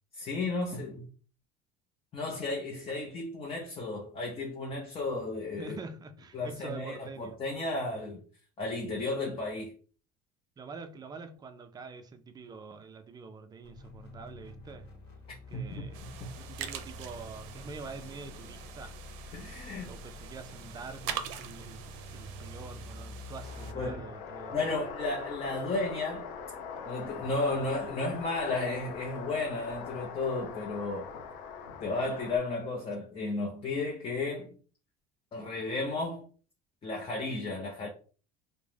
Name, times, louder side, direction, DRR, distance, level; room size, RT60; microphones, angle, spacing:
voice 1, 0.1-1.1 2.1-5.8 6.3-8.2 8.6-9.7 15.5-15.9 19.3-19.9 23.7-24.1 24.5-26.3 26.9-31.1 31.8-34.5 35.3-36.3 36.8-37.9, left 2 dB, 25° left, 0.6 m, -33 dB
voice 2, 5.6-7.4 10.6-14.9 15.5-16.0 16.4-19.0 19.9-21.8 22.1-24.6, right 4 dB, 20° right, 0.3 m, -45 dB
sound 1, 13.6-24.1, left 3 dB, 55° left, 1.1 m, -47 dB
sound 2, 15.9-23.7, right 9 dB, 80° right, 0.5 m, -43 dB
sound 3, 23.4-32.4, left 6 dB, 85° left, 0.6 m, -42 dB
2.4 x 2.1 x 3.2 m
cardioid pair, 120°, 20 cm